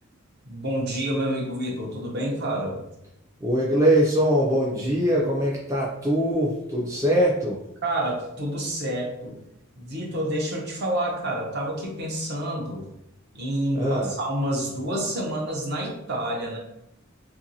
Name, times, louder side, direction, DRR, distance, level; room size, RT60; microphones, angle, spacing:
voice 1, 0.4-2.8 7.8-9.4 9.8-12.8 13.3-16.6, right 1 dB, 50° right, -1 dB, 0.7 m, -28 dB
voice 2, 3.4-7.6 13.7-14.1, equal, 15° right, -5 dB, 0.3 m, -22 dB
2.9 x 2.5 x 2.7 m, 0.83 s
head